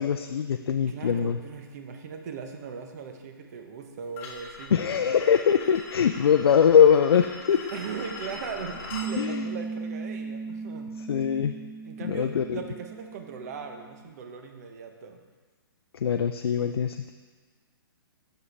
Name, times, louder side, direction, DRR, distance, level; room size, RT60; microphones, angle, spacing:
voice 1, 0.0-1.4 4.7-7.6 9.2-9.5 11.1-11.5 12.0-12.6 16.0-17.1, left 8 dB, 80° left, 7 dB, 0.4 m, -22 dB
voice 2, 0.8-4.8 7.7-10.9 11.8-15.2, right 6 dB, 45° right, 5 dB, 0.7 m, -39 dB
sound 1, 4.2-9.1, left 4 dB, 35° left, 1.3 m, -41 dB
Piano, 8.9-14.0, right 4 dB, 80° right, 0.8 m, -37 dB
7.2 x 6.3 x 3.3 m, 1.5 s
hypercardioid pair, 145°, 13 cm